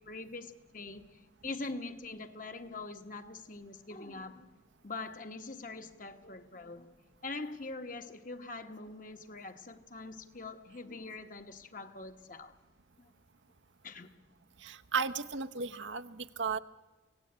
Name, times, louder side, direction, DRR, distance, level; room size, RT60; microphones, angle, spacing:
voice 1, 0.0-4.5 4.8-6.9 7.2-12.5 13.0-13.1 13.8-14.1, left 3 dB, 45° left, 7 dB, 1.4 m, -43 dB
voice 2, 14.6-16.6, right 5 dB, 90° right, 9 dB, 1.0 m, -35 dB
25.5 x 17.0 x 8.7 m, 1.2 s
head